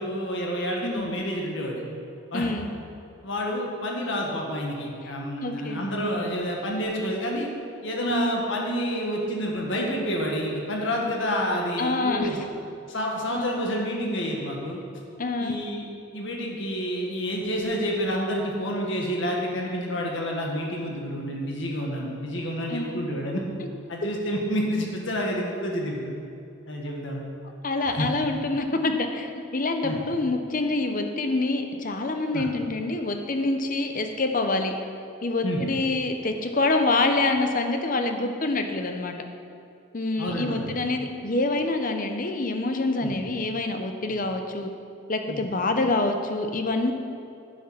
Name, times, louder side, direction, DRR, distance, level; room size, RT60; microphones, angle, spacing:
voice 1, 0.0-1.8 2.3-2.5 3.2-7.5 7.8-12.5 12.9-14.8 15.4-15.9 16.1-23.4 23.9-26.1 26.7-27.2 27.9-28.1 29.8-30.0 32.3-32.5 35.4-35.6 40.2-40.7 43.0-43.1 45.3-45.4, equal, 60° left, -1 dB, 1.9 m, -29 dB
voice 2, 2.3-2.7 5.4-5.8 8.0-8.3 11.8-12.3 13.3-13.6 15.2-15.6 22.7-23.0 27.6-34.7 35.2-39.1 39.9-44.7 45.1-46.9, left 2 dB, 40° left, 5 dB, 0.8 m, -26 dB
10.0 x 7.1 x 5.9 m, 2.6 s
head